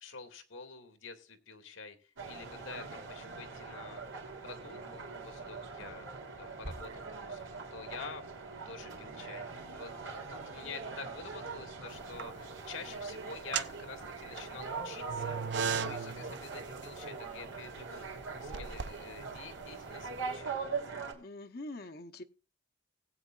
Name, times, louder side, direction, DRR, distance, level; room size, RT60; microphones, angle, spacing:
voice 1, 0.0-4.0 4.4-6.1 6.4-8.2 8.7-15.4 15.8-20.6, left 4 dB, 90° left, 1.8 m, -48 dB
sound 1, 2.2-21.1, right 4 dB, 85° right, 2.9 m, -42 dB
sound 2, 11.9-12.6 13.3-20.2, right 6 dB, 60° right, 0.5 m, -39 dB
voice 2, 21.1-22.2, left 2 dB, 50° left, 0.8 m, -44 dB
19.0 x 8.4 x 2.4 m
head